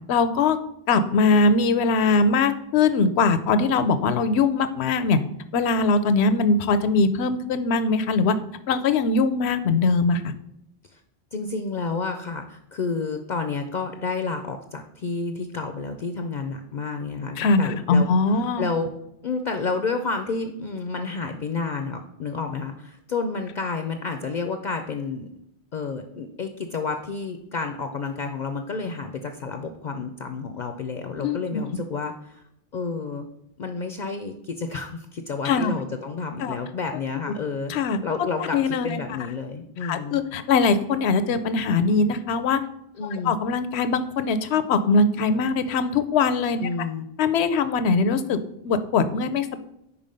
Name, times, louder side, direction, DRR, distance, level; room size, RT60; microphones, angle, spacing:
voice 1, 0.1-0.6 0.9-5.2 5.5-8.4 8.7-10.2 17.4-18.6 31.2-31.6 35.4-35.7 36.4-36.6 37.7-38.0 38.5-39.0 39.8-42.6 43.2-46.6 47.2-49.6, left 4 dB, 80° left, 12 dB, 0.9 m, -21 dB
voice 2, 11.3-18.1 18.6-18.9 19.2-25.3 25.7-32.4 32.7-33.3 33.6-40.2 43.0-43.3 46.6-47.1, left 4 dB, 55° left, 6 dB, 0.6 m, -30 dB
5.6 x 4.8 x 5.2 m, 0.80 s
omnidirectional pair, 1.1 m